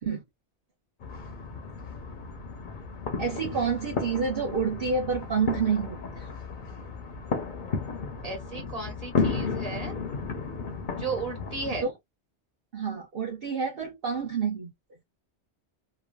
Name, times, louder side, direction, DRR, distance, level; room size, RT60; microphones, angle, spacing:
sound 1, 1.0-11.8, left 4 dB, 50° left, 0.7 m, -33 dB
voice 1, 3.2-6.3 11.8-11.9 12.7-14.7, right 5 dB, 55° right, 1.0 m, -28 dB
voice 2, 8.2-9.9 10.9-11.8, right 3 dB, 35° right, 1.5 m, -34 dB
3.1 x 2.2 x 2.3 m
omnidirectional pair, 1.1 m